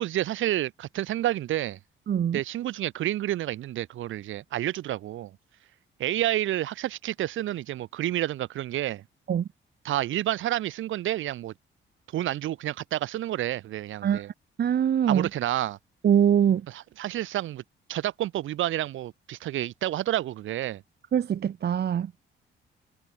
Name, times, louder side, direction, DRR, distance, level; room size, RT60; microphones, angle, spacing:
voice 1, 0.0-1.8 2.3-5.3 6.0-9.0 9.8-11.5 12.1-14.3 15.1-15.8 16.7-17.6 17.9-20.8, right 13 dB, 80° right, 5.3 m, -29 dB
voice 2, 2.1-2.4 9.3-9.4 14.0-14.2 14.6-15.3 16.0-16.6 21.1-22.1, right 9 dB, 55° right, 1.6 m, -23 dB
cardioid pair, 90°, 20 cm